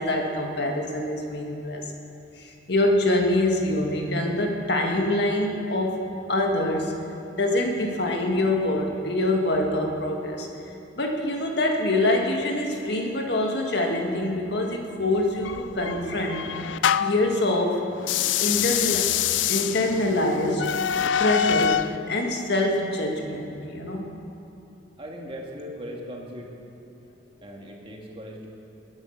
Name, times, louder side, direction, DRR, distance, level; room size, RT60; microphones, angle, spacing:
voice 1, 0.0-1.8 2.4-6.0 6.3-6.9 7.3-10.5 11.0-16.5 17.0-17.9 18.4-19.1 19.5-20.8 21.2-24.1, left 1 dB, 65° left, 1 dB, 1.9 m, -25 dB
sound 1, 15.5-17.3 18.0-22.0, left 9 dB, 80° left, 0.4 m, -25 dB
voice 2, 25.0-26.5 27.4-28.5, equal, 30° right, -1 dB, 2.1 m, -38 dB
21.0 x 8.9 x 6.6 m, 2.7 s
head